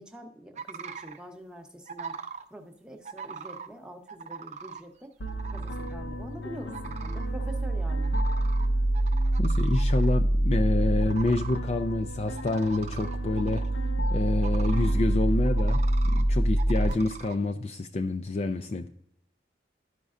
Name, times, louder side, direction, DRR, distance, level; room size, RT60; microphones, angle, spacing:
voice 1, 0.0-2.2 2.5-5.1 5.5-8.1, equal, 5° right, 3 dB, 0.8 m, -45 dB
sound 1, 0.6-1.2 1.9-2.4 3.1-3.7 4.1-4.8 5.3-5.9 6.7-7.3 8.0-8.7 8.9-10.1 11.0-11.6 12.4-13.7 14.4-14.9 15.6-16.2 16.6-17.4, right 6 dB, 40° right, 0.5 m, -41 dB
sound 2, 5.2-16.9, right 1 dB, 85° left, 0.8 m, -26 dB
voice 2, 9.4-13.6 14.1-18.9, left 2 dB, 35° left, 6 dB, 0.3 m, -28 dB
12.5 x 5.2 x 2.4 m, 0.69 s
head